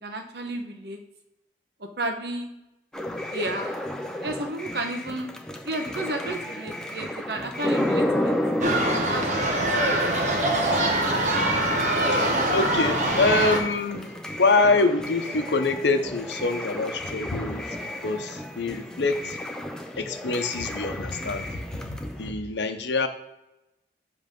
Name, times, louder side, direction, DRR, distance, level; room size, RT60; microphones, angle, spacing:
voice 1, 0.0-1.0 1.8-2.5 3.3-3.8 4.2-5.3 5.6-8.3 8.9-9.6, right 1 dB, 75° right, 5 dB, 0.9 m, -32 dB
sound 1, 2.9-22.3, left 1 dB, 5° left, 0.5 m, -33 dB
sound 2, 8.6-13.6, right 1 dB, 45° right, 0.9 m, -23 dB
voice 2, 12.1-17.7 18.0-19.4 20.0-23.1, left 3 dB, 85° left, 7 dB, 0.7 m, -25 dB
7.6 x 3.2 x 5.2 m, 0.93 s
head